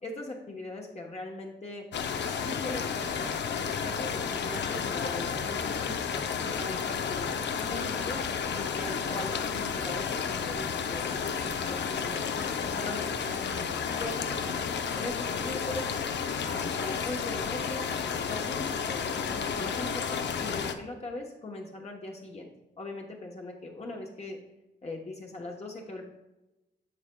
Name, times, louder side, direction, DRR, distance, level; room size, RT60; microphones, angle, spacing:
voice 1, 0.0-1.8 2.3-3.3 3.6-8.2 8.5-14.6 14.9-15.9 16.4-22.5 22.8-24.4 24.8-26.1, left 2 dB, 35° left, 0 dB, 0.9 m, -40 dB
sound 1, 1.9-20.7, left 6 dB, 70° left, 0.6 m, -32 dB
12.5 x 4.8 x 2.2 m, 0.98 s
wide cardioid pair, 150°, 19 cm